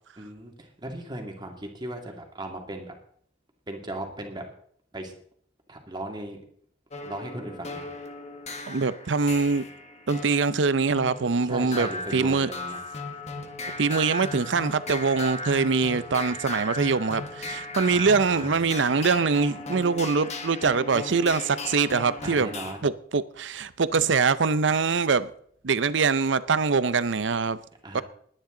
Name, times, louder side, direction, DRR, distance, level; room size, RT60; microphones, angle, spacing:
voice 1, 0.2-2.9 3.7-4.4 4.9-5.1 5.7-6.4 7.0-7.9 11.4-12.8 17.9-18.5 22.2-22.9 27.8-28.0, right 1 dB, 25° right, 2.3 m, -37 dB
Oscillator Filter-Modulation and Spring Reverb, 6.9-22.7, left 2 dB, 40° left, 1.6 m, -37 dB
voice 2, 8.7-9.7 10.1-12.5 13.8-22.5 22.8-25.3 25.6-27.6 27.9-28.0, right 4 dB, 70° right, 0.6 m, -23 dB
20.0 x 10.0 x 3.9 m
head